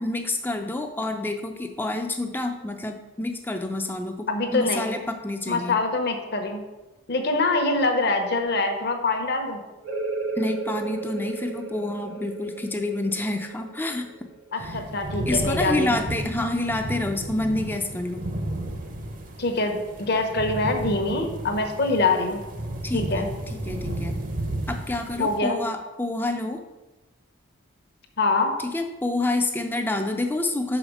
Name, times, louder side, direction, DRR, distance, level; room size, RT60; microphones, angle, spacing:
voice 1, 0.0-5.8 10.4-14.1 14.6-14.8 15.3-18.2 22.8-24.2 24.7-26.6 28.6-30.8, left 2 dB, 10° left, 5 dB, 0.4 m, -28 dB
voice 2, 4.3-4.9 5.5-6.6 7.1-9.6 14.5-16.0 19.4-22.4 22.9-23.3 25.2-25.6 28.2-28.5, left 3 dB, 50° left, 5 dB, 0.9 m, -24 dB
sound 1, 9.8-15.2, right 3 dB, 65° right, 1.1 m, -34 dB
sound 2, 14.6-25.4, right 1 dB, 40° right, 0.7 m, -33 dB
5.6 x 5.0 x 6.3 m, 1.1 s
head